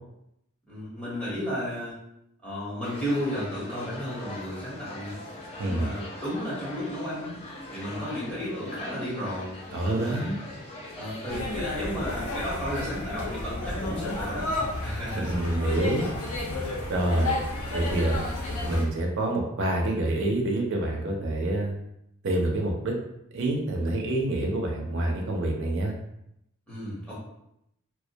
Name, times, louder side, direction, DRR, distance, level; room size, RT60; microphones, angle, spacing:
voice 1, 0.7-2.0 2.4-5.2 5.6-7.4 7.7-10.3 10.9-14.5 14.8-15.4 26.7-27.2, equal, 5° left, -9 dB, 0.9 m, -33 dB
sound 1, 2.8-11.4, left 1 dB, 25° left, 0.4 m, -42 dB
voice 2, 5.6-5.9 9.7-10.4 15.1-16.1 16.9-17.4 17.7-21.8 22.2-22.9 23.3-25.9, right 1 dB, 55° right, 1 dB, 0.4 m, -27 dB
sound 2, 11.3-18.8, left 2 dB, 90° left, 0.6 m, -32 dB
2.3 x 2.0 x 2.7 m, 0.80 s
head